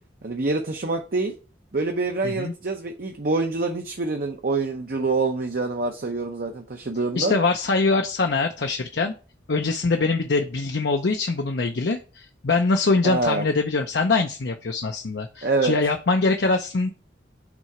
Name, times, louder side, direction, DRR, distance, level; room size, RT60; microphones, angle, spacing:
voice 1, 0.2-1.3 1.7-7.3 13.0-13.4 15.4-15.7, right 3 dB, 50° right, 4 dB, 0.7 m, -26 dB
voice 2, 7.2-9.1 9.5-16.9, left 3 dB, 65° left, 4 dB, 0.6 m, -23 dB
6.1 x 3.7 x 4.3 m, 0.34 s
head